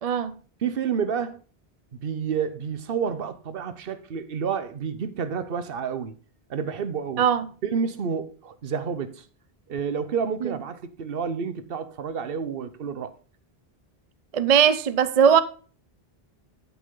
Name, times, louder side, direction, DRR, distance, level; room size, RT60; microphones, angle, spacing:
voice 1, 0.0-0.3 7.2-7.5 10.4-10.5 14.3-15.4, right 8 dB, 45° right, 0.5 m, -19 dB
voice 2, 0.6-1.4 2.0-6.1 6.5-7.2 7.6-9.2 9.7-13.1, right 6 dB, 65° right, 1.1 m, -29 dB
12.5 x 6.0 x 3.8 m
omnidirectional pair, 1.0 m